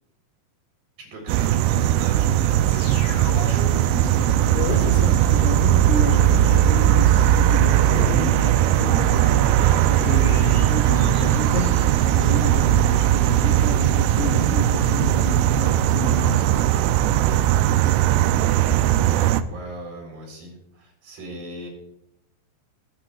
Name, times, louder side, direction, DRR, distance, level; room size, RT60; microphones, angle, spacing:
voice 1, 1.0-4.2 19.1-21.7, right 2 dB, 65° right, 5.6 m, -39 dB
sound 1, 1.3-19.4, right 12 dB, 80° right, 2.5 m, -19 dB
sound 2, 2.7-13.5 13.8-13.9, left 5 dB, 65° left, 2.4 m, -36 dB
voice 2, 4.5-9.3 9.8-16.9, left 6 dB, 85° left, 1.8 m, -31 dB
23.0 x 9.0 x 2.3 m
omnidirectional pair, 4.9 m